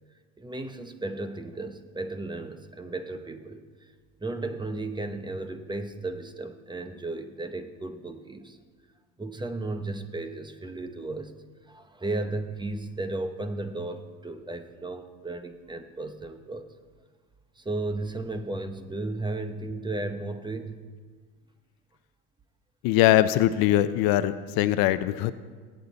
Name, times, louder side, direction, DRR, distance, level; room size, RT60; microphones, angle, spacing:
voice 1, 0.4-3.9 4.2-8.6 9.2-11.3 11.7-16.6 17.6-20.8, right 2 dB, 10° right, 8 dB, 0.9 m, -34 dB
voice 2, 22.8-25.3, left 13 dB, 60° left, 13 dB, 0.7 m, -22 dB
20.5 x 8.6 x 4.1 m, 1.5 s
supercardioid pair, 110°, 39 cm